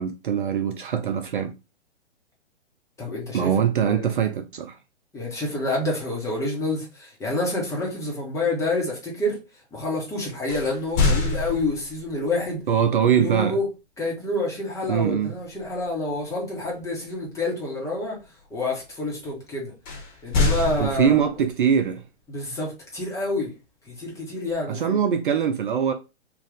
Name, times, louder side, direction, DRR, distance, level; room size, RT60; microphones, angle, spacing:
voice 1, 0.0-1.5 3.3-4.8 12.7-13.6 14.9-15.3 20.8-22.0 24.7-25.9, right 8 dB, 45° right, 0.4 m, -22 dB
voice 2, 3.0-4.1 5.1-9.4 9.7-12.6 13.2-13.7 14.0-18.2 18.5-19.7 20.2-21.2 22.3-23.5 23.9-25.0, left 2 dB, 10° left, 1.1 m, -28 dB
sound 1, 10.5-12.1 14.9-15.2 15.6-15.9 19.9-21.5, left 3 dB, 40° left, 1.3 m, -25 dB
3.3 x 2.4 x 3.9 m
figure-of-eight pair, 125°, 35 cm